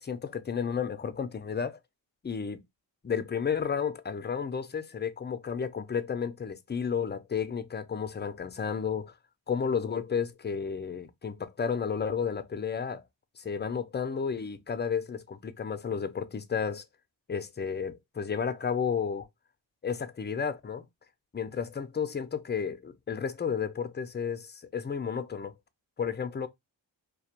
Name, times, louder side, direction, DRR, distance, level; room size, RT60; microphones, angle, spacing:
voice 1, 0.0-1.8 2.2-2.6 3.0-9.1 9.5-13.0 13.4-16.8 17.3-19.3 19.8-20.8 21.3-25.5 26.0-26.5, left 6 dB, 25° left, 0.4 m, -32 dB
2.3 x 2.1 x 2.8 m
cardioid pair, 50°, 45 cm